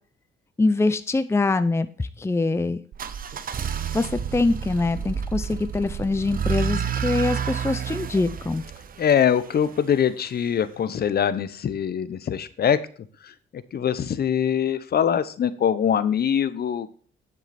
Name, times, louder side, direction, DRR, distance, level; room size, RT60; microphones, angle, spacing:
voice 1, 0.6-2.8 3.9-8.6, left 3 dB, 15° left, 12 dB, 0.6 m, -24 dB
sound 1, 2.9-9.8, right 7 dB, 45° right, 0.9 m, -30 dB
voice 2, 9.0-12.8 13.2-16.9, left 8 dB, 50° left, 14 dB, 0.9 m, -23 dB
10.5 x 6.5 x 4.3 m, 0.42 s
cardioid pair, 90°, 20 cm